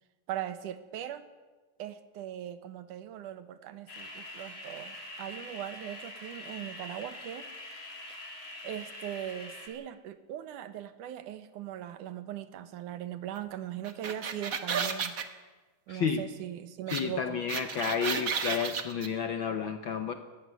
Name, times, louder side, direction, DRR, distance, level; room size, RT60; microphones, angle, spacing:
voice 1, 0.3-1.3 1.8-7.8 8.6-15.2 15.9-17.4, right 11 dB, 90° right, 12 dB, 2.7 m, -40 dB
sound 1, 3.9-9.7, left 1 dB, 55° left, 4.4 m, -44 dB
sound 2, 13.8-15.2 16.9-17.0 17.3-19.1, right 6 dB, 50° right, 1.0 m, -32 dB
voice 2, 15.9-16.2 16.9-20.1, left 6 dB, 70° left, 8 dB, 1.1 m, -31 dB
19.0 x 14.5 x 9.4 m, 1.3 s
omnidirectional pair, 3.5 m